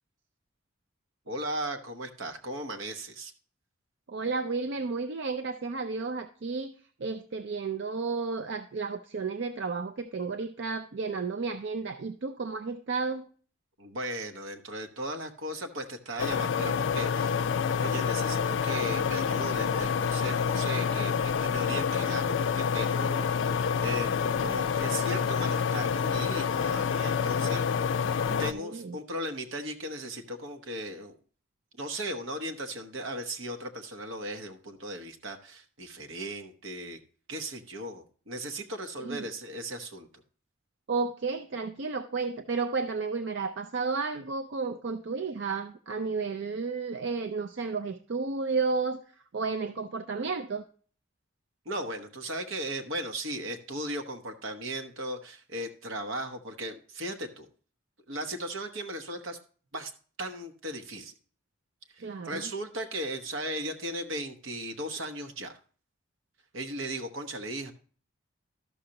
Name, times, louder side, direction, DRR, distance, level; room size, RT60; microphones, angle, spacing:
voice 1, 1.3-3.3 13.8-17.4 17.8-27.6 28.4-31.2 31.8-37.0 37.3-40.1 51.6-57.5 58.1-59.4 59.7-59.9 60.2-61.1 61.9-65.6 66.5-67.7, right 1 dB, 75° right, 1.1 m, -37 dB
voice 2, 4.1-6.7 7.0-13.3 28.2-29.0 39.0-39.3 40.9-49.0 49.3-50.6 62.0-62.5, right 4 dB, 60° right, 0.4 m, -32 dB
sound 1, 16.2-28.5, left 6 dB, 65° left, 0.4 m, -28 dB
12.5 x 6.5 x 2.8 m
head